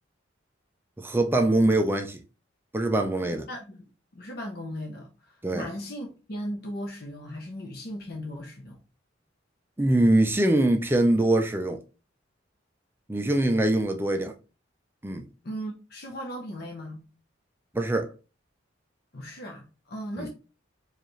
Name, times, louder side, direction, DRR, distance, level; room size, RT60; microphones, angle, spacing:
voice 1, 1.0-2.2 2.7-3.4 5.4-5.7 9.8-11.8 13.1-14.3 15.0-15.2 17.7-18.1 20.2-20.3, right 1 dB, 10° right, 0.3 m, -23 dB
voice 2, 3.5-3.8 4.1-8.8 15.4-17.0 19.1-20.3, equal, 55° left, 0.7 m, -37 dB
4.8 x 2.4 x 3.1 m
head